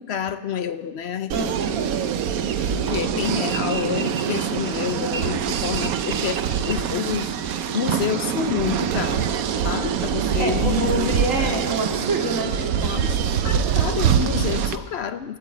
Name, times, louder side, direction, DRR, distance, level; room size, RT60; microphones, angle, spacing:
voice 1, 0.0-1.5 2.2-2.3 2.6-9.3 9.6-11.6 12.8-13.2 13.4-15.4, left 8 dB, 60° left, 11 dB, 0.8 m, -28 dB
voice 2, 1.3-1.8 10.4-13.0, right 2 dB, 65° right, 0 dB, 2.7 m, -26 dB
sound 1, 1.3-14.8, right 8 dB, 90° right, 1.2 m, -24 dB
sound 2, 1.6-11.6, equal, 10° right, 4.6 m, -44 dB
13.5 x 11.5 x 8.1 m, 1.3 s
omnidirectional pair, 1.5 m